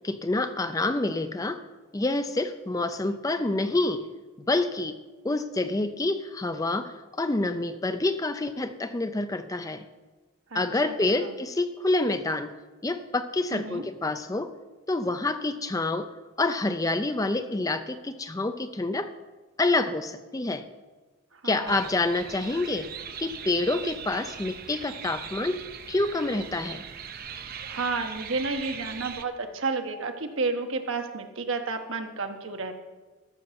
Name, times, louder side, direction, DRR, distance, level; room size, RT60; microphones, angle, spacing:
voice 1, 0.0-1.6 1.9-4.1 4.4-5.0 5.2-9.8 10.5-12.5 12.8-14.5 14.9-16.1 16.4-19.1 19.6-20.7 21.4-22.9 23.2-25.6 25.9-26.8, left 2 dB, 15° left, 10 dB, 0.4 m, -27 dB
voice 2, 10.5-11.3 13.5-13.8 21.3-21.8 27.5-32.8, right 3 dB, 65° right, 6 dB, 1.1 m, -31 dB
sound 1, 21.7-29.3, right 7 dB, 45° right, 0.6 m, -40 dB
14.0 x 6.0 x 6.9 m, 1.2 s
head